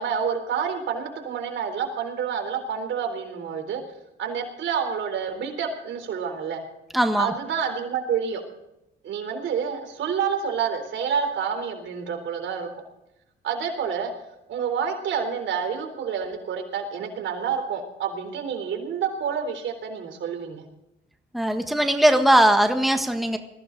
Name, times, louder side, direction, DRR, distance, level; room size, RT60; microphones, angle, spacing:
voice 1, 0.0-3.8 4.2-6.6 7.2-8.4 9.0-12.8 13.4-14.1 14.5-20.6, right 7 dB, 70° right, 5 dB, 3.9 m, -28 dB
voice 2, 6.9-7.3 21.3-23.4, right 1 dB, ahead, 6 dB, 1.6 m, -19 dB
21.0 x 16.0 x 4.0 m, 0.86 s
cardioid pair, 90°, 20 cm